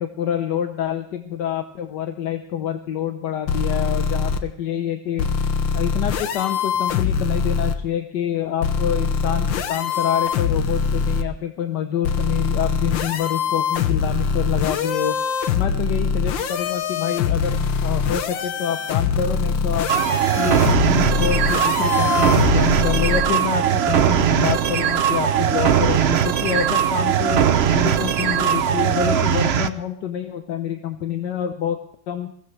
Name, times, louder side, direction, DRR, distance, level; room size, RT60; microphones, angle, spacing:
voice 1, 0.0-5.3 5.7-15.2 15.5-19.9 20.4-27.4 27.7-31.8 32.1-32.3, left 9 dB, 65° left, 6 dB, 1.5 m, -27 dB
sound 1, 3.5-4.4 5.2-7.8 8.6-11.2 12.0-23.2, left 6 dB, 85° left, 1.7 m, -23 dB
sound 2, 19.9-29.7, right 9 dB, 75° right, 0.5 m, -19 dB
22.0 x 16.0 x 3.3 m, 0.64 s
omnidirectional pair, 2.1 m